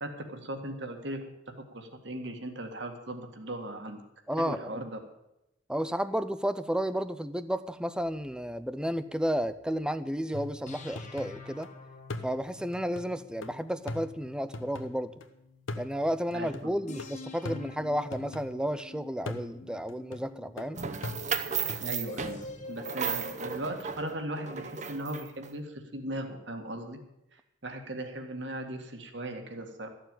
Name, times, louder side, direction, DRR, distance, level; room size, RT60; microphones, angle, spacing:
voice 1, 0.0-1.2 1.7-4.0 4.4-5.0 16.3-17.0 21.8-27.0 27.3-29.9, right 1 dB, 65° right, 5 dB, 1.9 m, -38 dB
voice 2, 4.3-4.8 5.7-11.7 12.2-15.1 15.8-20.8, equal, 5° right, 13 dB, 0.5 m, -32 dB
sound 1, 8.0-10.0 10.7-15.9 16.9-21.1 22.1-23.6, left 3 dB, 40° left, 1.2 m, -48 dB
sound 2, 10.3-11.7 12.1-15.3 15.7-18.8 19.3-21.9, left 2 dB, 90° left, 1.1 m, -42 dB
sound 3, 20.8-25.5, right 6 dB, 40° right, 0.8 m, -35 dB
13.5 x 7.0 x 9.1 m, 0.87 s
head